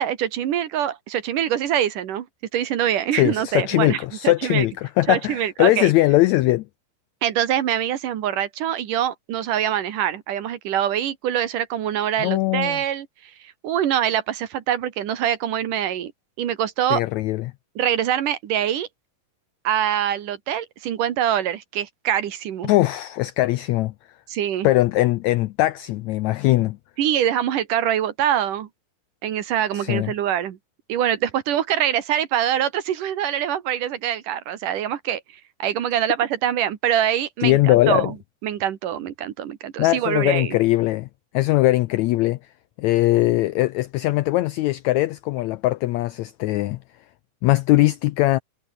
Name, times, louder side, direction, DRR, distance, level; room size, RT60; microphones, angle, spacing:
voice 1, 0.0-2.3 2.5-4.7 5.1-5.9 7.2-16.1 16.4-17.0 17.8-18.9 19.6-22.7 24.3-24.7 27.0-28.7 29.2-30.6 30.9-35.2 35.6-38.2 38.4-40.6, right 10 dB, 75° right, 3.2 m, -24 dB
voice 2, 3.1-6.6 12.2-12.8 16.9-17.5 22.7-23.9 24.6-26.8 29.7-30.1 37.4-38.1 39.8-41.1 41.3-42.4 42.8-46.8 47.4-48.4, left 17 dB, 85° left, 1.6 m, -20 dB
omnidirectional pair, 3.9 m